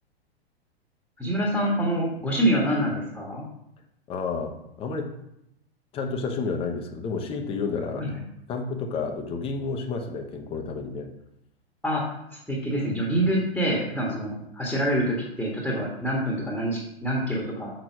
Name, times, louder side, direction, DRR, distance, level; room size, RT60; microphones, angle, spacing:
voice 1, 1.2-3.4 8.0-8.2 11.8-12.0 12.3-17.7, right 1 dB, ahead, -3 dB, 1.5 m, -26 dB
voice 2, 4.1-5.1 5.9-8.1 8.5-11.1, left 4 dB, 20° left, 3 dB, 1.0 m, -30 dB
6.5 x 6.1 x 5.9 m, 0.81 s
figure-of-eight pair, 105°, 32 cm